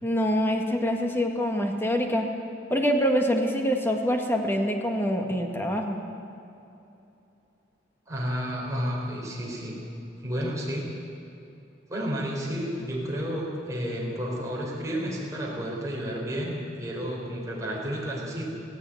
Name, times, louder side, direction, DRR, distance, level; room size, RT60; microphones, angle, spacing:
voice 1, 0.0-2.3 2.7-6.0, equal, 15° left, 2 dB, 2.0 m, -25 dB
voice 2, 8.1-9.8 10.2-10.9 11.9-18.5, equal, 20° right, -4 dB, 5.4 m, -31 dB
17.0 x 16.5 x 9.5 m, 2.8 s
head